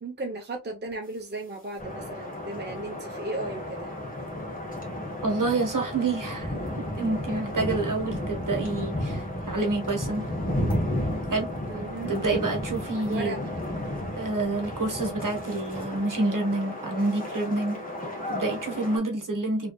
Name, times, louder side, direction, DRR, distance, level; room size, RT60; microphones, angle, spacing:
voice 1, 0.0-3.9 11.7-12.1 13.1-13.6, right 2 dB, 25° right, 0.8 m, -35 dB
sound 1, 1.8-19.0, left 1 dB, 20° left, 1.5 m, -33 dB
voice 2, 5.2-10.3 11.3-11.5 12.1-13.4 14.2-17.8 18.3-19.7, right 2 dB, 50° right, 1.4 m, -28 dB
3.4 x 3.4 x 2.3 m
cardioid pair, 55°, 40 cm